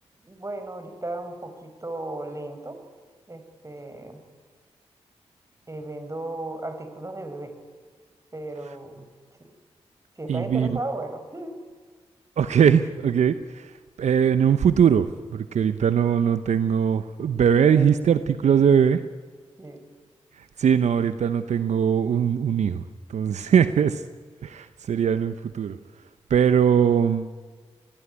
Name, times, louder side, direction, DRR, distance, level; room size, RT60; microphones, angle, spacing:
voice 1, 0.2-2.8 3.3-4.2 5.7-7.6 8.3-9.1 9.4-9.5 10.2-11.6 17.7-17.9 19.6-19.8, right 2 dB, 25° right, 8 dB, 5.4 m, -35 dB
voice 2, 10.3-10.8 12.4-19.0 20.3-24.0 24.4-25.8 26.3-27.3, right 8 dB, 75° right, 12 dB, 0.9 m, -21 dB
25.5 x 19.5 x 9.9 m, 1.5 s
supercardioid pair, 40°, 12 cm